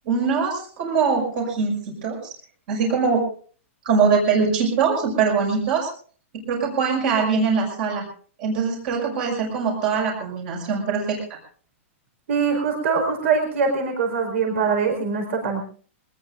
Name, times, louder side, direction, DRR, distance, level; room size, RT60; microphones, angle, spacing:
voice 1, 0.1-1.8 2.0-2.3 2.7-3.2 3.8-5.9 6.3-8.0 8.4-11.4, right 5 dB, 45° right, 0 dB, 6.2 m, -22 dB
voice 2, 12.3-15.6, right 5 dB, 65° right, 4 dB, 4.7 m, -23 dB
22.5 x 20.0 x 2.6 m, 0.43 s
supercardioid pair, 170°, 7 cm